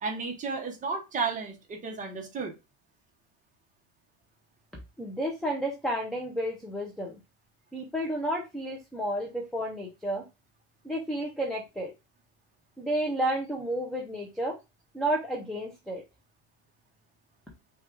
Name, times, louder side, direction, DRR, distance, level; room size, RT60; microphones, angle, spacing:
voice 1, 0.0-2.5, right 4 dB, 20° right, 1.0 m, -33 dB
voice 2, 5.0-7.2 7.7-10.2 10.8-11.9 12.8-14.6 14.9-16.0, right 1 dB, ahead, 0.5 m, -31 dB
5.9 x 2.4 x 3.7 m
cardioid pair, 160°, 39 cm